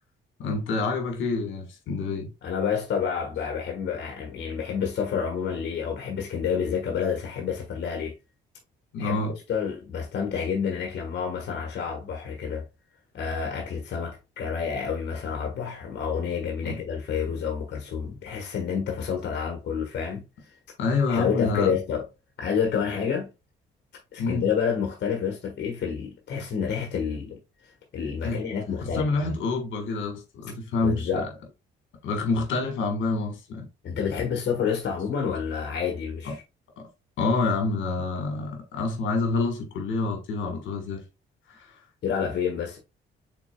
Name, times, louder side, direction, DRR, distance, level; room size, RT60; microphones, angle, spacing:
voice 1, 0.4-2.3 8.9-9.4 16.6-16.8 20.8-21.7 24.2-24.5 28.2-28.4 28.8-31.1 32.0-33.7 36.2-36.3 36.8-36.9 37.2-41.0 41.5-41.7, left 3 dB, 75° left, 1.5 m, -27 dB
voice 2, 2.4-8.1 9.0-9.2 9.5-12.6 13.1-20.2 21.1-22.0 22.4-23.3 24.1-27.4 27.9-29.3 30.8-31.3 33.8-36.4 42.0-42.8, left 7 dB, 60° left, 1.2 m, -29 dB
6.0 x 3.8 x 2.2 m
cardioid pair, 90°, 20 cm